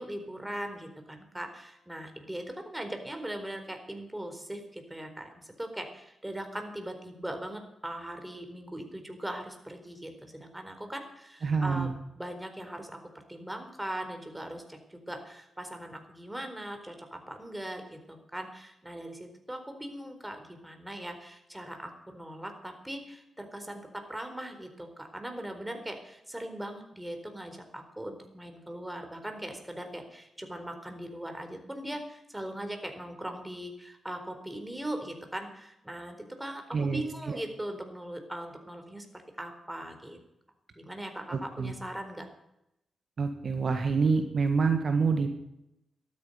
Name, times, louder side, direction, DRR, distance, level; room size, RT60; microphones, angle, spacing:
voice 1, 0.0-11.9 12.2-13.0 13.3-39.1 39.4-40.2 40.8-42.3, right 1 dB, 10° right, 5 dB, 4.1 m, -40 dB
voice 2, 11.4-11.9 36.7-37.4 41.3-41.7 43.2-45.4, right 4 dB, 60° right, 6 dB, 1.7 m, -27 dB
12.5 x 9.6 x 9.5 m, 0.85 s
supercardioid pair, 45°, 0 cm